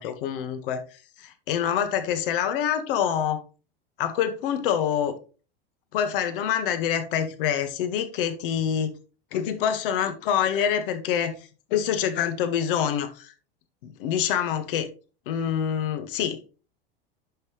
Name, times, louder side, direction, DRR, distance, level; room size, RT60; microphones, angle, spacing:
voice 1, 0.0-3.4 4.0-5.1 5.9-8.9 9.3-11.4 11.7-13.3 13.8-14.9 15.2-16.5, left 9 dB, 65° left, 1.7 m, -26 dB
10.5 x 6.0 x 3.2 m
hypercardioid pair, 95°, 29 cm